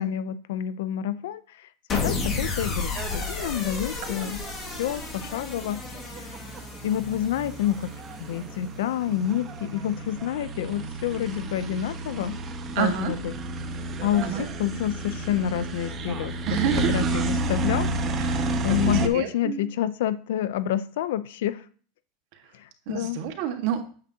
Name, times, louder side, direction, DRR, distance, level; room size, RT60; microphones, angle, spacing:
voice 1, 0.0-4.4 4.8-5.8 6.2-6.4 6.8-7.9 8.2-12.4 12.7-13.3 14.0-16.4 16.9-21.7 22.5-23.2, left 11 dB, 80° left, 15 dB, 0.6 m, -28 dB
sound 1, 1.9-8.2, left 3 dB, 25° left, 2.2 m, -32 dB
sound 2, 2.9-19.1, right 2 dB, 25° right, 1.1 m, -32 dB
voice 2, 12.7-13.1 14.2-14.4 16.5-17.0 18.2-19.6 22.9-23.8, right 9 dB, 60° right, 5 dB, 1.7 m, -29 dB
8.7 x 7.5 x 2.9 m, 0.42 s
supercardioid pair, 135°, 0 cm